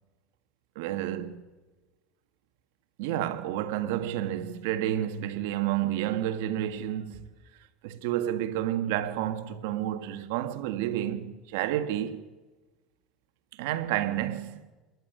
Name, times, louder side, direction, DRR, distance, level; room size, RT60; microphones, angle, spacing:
voice 1, 0.7-1.4 3.0-7.3 7.8-12.2 13.5-14.6, right 12 dB, 75° right, 1.7 m, -30 dB
27.5 x 11.0 x 9.4 m
supercardioid pair, 145°, 0 cm